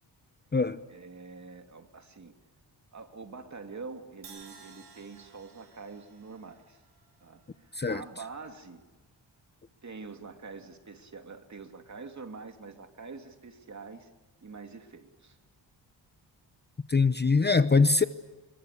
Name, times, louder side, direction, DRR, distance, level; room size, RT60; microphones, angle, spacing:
voice 1, 0.9-2.4 2.9-6.8 7.2-8.8 9.8-14.1 14.4-15.4, right 4 dB, 40° right, 2.8 m, -45 dB
Crash cymbal, 4.2-8.3, right 5 dB, 70° right, 6.9 m, -55 dB
voice 2, 16.9-18.0, left 4 dB, 25° left, 0.8 m, -23 dB
26.5 x 22.5 x 8.4 m
cardioid pair, 80°, 42 cm